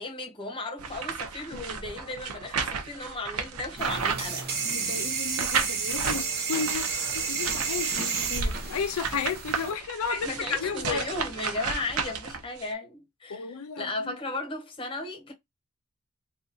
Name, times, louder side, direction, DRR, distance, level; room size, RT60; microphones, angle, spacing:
voice 1, 0.0-4.5 9.6-9.7 10.1-15.3, left 2 dB, 25° left, 1.1 m, -35 dB
sound 1, 0.8-4.8 5.4-6.2 6.6-12.7, right 5 dB, 85° right, 0.7 m, -33 dB
sound 2, 3.8-9.7, right 5 dB, 45° right, 0.9 m, -31 dB
voice 2, 4.6-11.0 13.3-14.2, left 5 dB, 80° left, 0.4 m, -33 dB
3.7 x 2.4 x 2.7 m
head